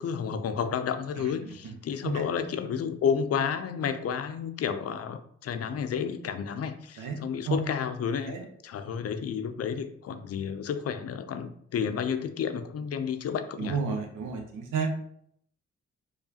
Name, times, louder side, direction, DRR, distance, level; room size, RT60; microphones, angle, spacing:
voice 1, 0.0-8.4 8.6-13.8, left 7 dB, 50° left, 9 dB, 0.5 m, -31 dB
voice 2, 13.6-15.0, right 5 dB, 70° right, 4 dB, 0.9 m, -31 dB
4.7 x 2.4 x 2.8 m, 0.67 s
supercardioid pair, 50°, 32 cm